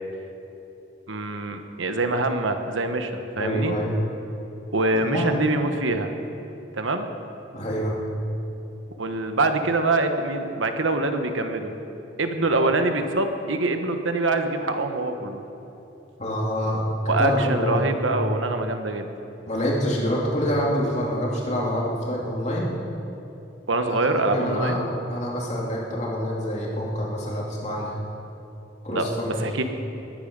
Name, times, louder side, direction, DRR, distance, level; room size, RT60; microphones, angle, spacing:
voice 1, 1.1-3.7 4.7-6.1 6.7-7.1 9.0-11.7 12.2-15.4 17.1-19.1 23.7-24.8 28.9-29.1 29.4-29.6, right 2 dB, 90° right, 6 dB, 1.2 m, -24 dB
voice 2, 3.3-3.9 4.9-5.2 7.5-8.0 16.2-17.9 19.5-22.7 23.9-27.9 28.8-29.4, equal, 35° left, -3 dB, 2.7 m, -26 dB
21.0 x 10.5 x 5.3 m, 3.0 s
head